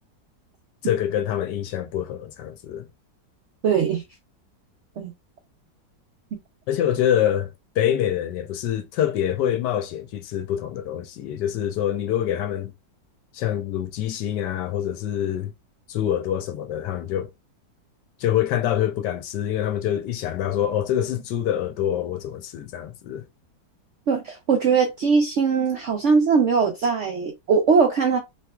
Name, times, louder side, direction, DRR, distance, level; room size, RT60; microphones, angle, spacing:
voice 1, 0.8-2.9 6.7-7.5 7.8-12.7 13.3-15.5 15.9-17.3 18.2-23.2, left 10 dB, 75° left, 1.2 m, -25 dB
voice 2, 3.6-4.0 5.0-5.1 24.1-28.2, right 5 dB, 90° right, 0.6 m, -20 dB
3.2 x 2.9 x 2.3 m
omnidirectional pair, 2.0 m